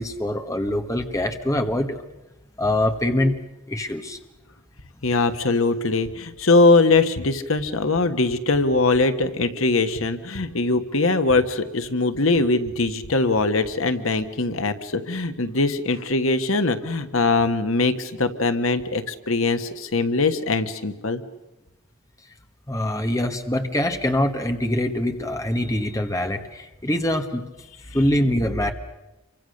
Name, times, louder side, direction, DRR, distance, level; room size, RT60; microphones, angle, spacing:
voice 1, 0.0-2.0 2.6-3.4 3.7-4.2 22.7-27.5 27.9-28.7, left 1 dB, 15° left, 6 dB, 1.4 m, -24 dB
voice 2, 5.0-21.2, left 3 dB, 70° left, 9 dB, 1.4 m, -21 dB
28.0 x 24.5 x 6.6 m, 1.0 s
head